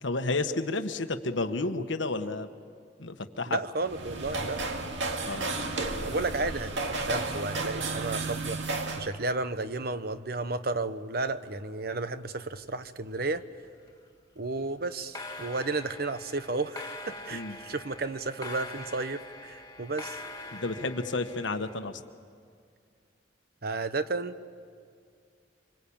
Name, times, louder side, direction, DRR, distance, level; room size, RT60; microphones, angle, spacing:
voice 1, 0.0-2.5 3.0-3.6 5.2-5.5 17.3-17.6 20.5-22.0, left 3 dB, 80° left, 8 dB, 1.3 m, -31 dB
voice 2, 3.5-4.6 6.0-13.4 14.4-20.2 23.6-24.4, right 3 dB, 55° right, 12 dB, 1.0 m, -33 dB
sound 1, 3.8-9.1, right 3 dB, 80° right, 2.1 m, -33 dB
sound 2, 12.5-13.4 13.6-14.1 14.9-21.7, left 2 dB, 20° left, 2.0 m, -44 dB
26.0 x 25.5 x 8.7 m, 2.3 s
head